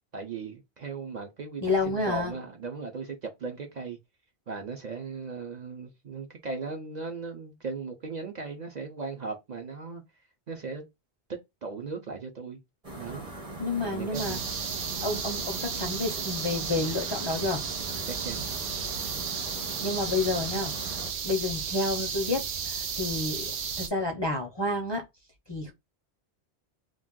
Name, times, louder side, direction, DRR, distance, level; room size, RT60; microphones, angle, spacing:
voice 1, 0.1-4.0 4.5-10.0 10.5-10.8 11.6-12.6 13.0-13.3 13.8-14.5 18.0-18.5, right 4 dB, 50° right, 0.6 m, -37 dB
voice 2, 1.6-2.3 13.6-14.4 15.0-17.6 19.8-20.7 21.2-23.5 23.8-25.0 25.5-25.7, left 2 dB, 35° left, 0.4 m, -29 dB
sound 1, 12.8-21.1, right 1 dB, 35° right, 1.0 m, -41 dB
sound 2, 14.1-23.9, right 6 dB, 85° right, 0.9 m, -34 dB
2.5 x 2.2 x 3.6 m
omnidirectional pair, 1.1 m